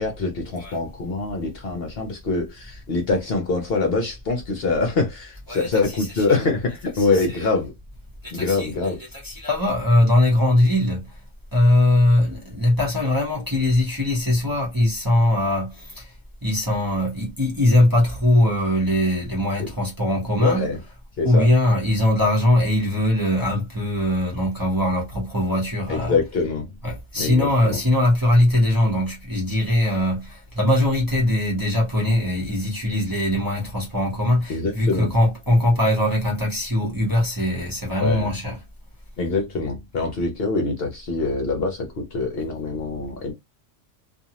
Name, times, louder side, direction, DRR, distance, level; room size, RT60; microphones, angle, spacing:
voice 1, 0.0-7.7 8.3-9.0 19.6-19.7 20.4-20.8 21.2-21.5 25.9-26.6 27.2-27.8 34.5-35.1 38.0-38.3 39.2-43.3, left 3 dB, 55° left, 0.8 m, -24 dB
voice 2, 5.9-6.2 7.0-7.5 8.2-11.1 11.5-16.1 16.4-20.7 21.2-26.2 26.8-38.6, left 1 dB, 20° right, 0.8 m, -21 dB
2.6 x 2.4 x 2.9 m
omnidirectional pair, 1.3 m